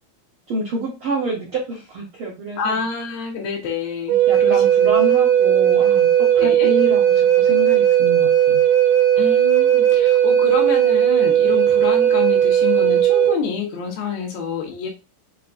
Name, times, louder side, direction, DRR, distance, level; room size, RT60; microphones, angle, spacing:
voice 1, 0.5-2.8 4.3-8.6, right 2 dB, 70° right, -4 dB, 1.3 m, -28 dB
voice 2, 2.6-4.9 6.4-6.7 9.2-14.9, left 5 dB, 85° left, 1 dB, 3.0 m, -27 dB
Wind instrument woodwind instrument, 4.1-13.4, right 10 dB, 90° right, 1.5 m, -16 dB
7.4 x 2.6 x 2.6 m, 0.28 s
omnidirectional pair, 4.2 m